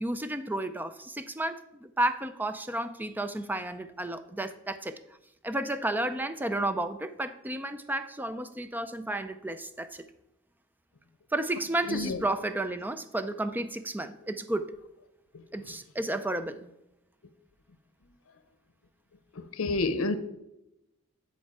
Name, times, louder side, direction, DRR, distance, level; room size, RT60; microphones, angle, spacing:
voice 1, 0.0-5.0 5.4-10.1 11.3-14.7 15.5-16.7, right 1 dB, 10° right, 11 dB, 0.4 m, -32 dB
voice 2, 11.9-12.2 19.4-20.2, left 3 dB, 85° left, 12 dB, 0.7 m, -29 dB
9.9 x 4.5 x 4.7 m, 0.87 s
head